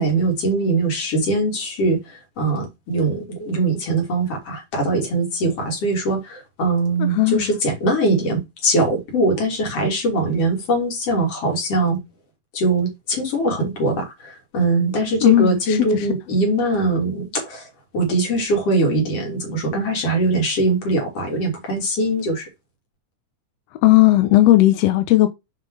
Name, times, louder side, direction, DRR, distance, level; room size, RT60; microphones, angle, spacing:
voice 1, 0.0-12.0 12.5-17.7 17.9-22.5, right 2 dB, 50° left, 3.9 m, -22 dB
voice 2, 7.0-7.5 15.2-16.0 23.8-25.3, left 16 dB, 75° left, 1.5 m, -15 dB
8.0 x 5.0 x 4.8 m
omnidirectional pair, 3.8 m